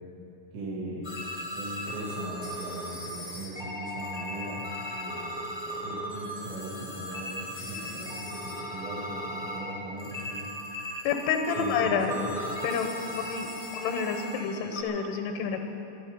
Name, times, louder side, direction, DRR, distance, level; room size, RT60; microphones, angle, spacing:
voice 1, 0.5-1.2 1.6-10.5 11.6-12.3, right 1 dB, 75° right, -7 dB, 4.6 m, -39 dB
sound 1, 1.0-14.8, equal, 15° left, 0.8 m, -37 dB
voice 2, 11.0-12.2 12.6-12.9 13.2-13.5 13.7-15.6, left 6 dB, 85° left, 5 dB, 3.3 m, -29 dB
21.0 x 12.0 x 5.3 m, 2.9 s
omnidirectional pair, 5.3 m